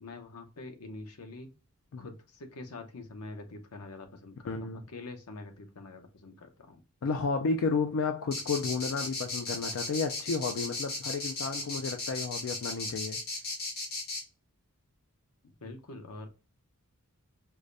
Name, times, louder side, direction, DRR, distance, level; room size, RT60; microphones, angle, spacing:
voice 1, 0.0-1.5 2.0-6.8 15.4-16.3, left 2 dB, 90° left, 0.8 m, -45 dB
voice 2, 4.5-4.8 7.0-13.2, left 4 dB, 60° left, 0.4 m, -32 dB
sound 1, 8.3-14.2, left 2 dB, 45° left, 1.1 m, -35 dB
4.8 x 2.1 x 2.5 m
head